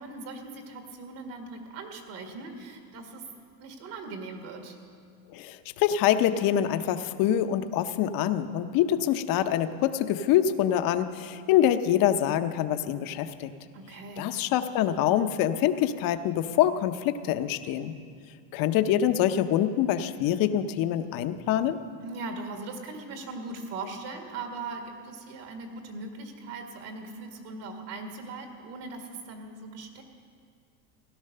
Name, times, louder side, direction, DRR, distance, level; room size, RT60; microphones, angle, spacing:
voice 1, 0.0-3.3 3.6-4.8 13.7-14.3 22.0-30.0, right 3 dB, 55° right, 3 dB, 2.1 m, -40 dB
voice 2, 5.3-13.5 14.2-17.9 18.5-21.8, left 11 dB, 45° left, 9 dB, 0.8 m, -25 dB
16.5 x 11.5 x 6.6 m, 2.2 s
supercardioid pair, 145°, 49 cm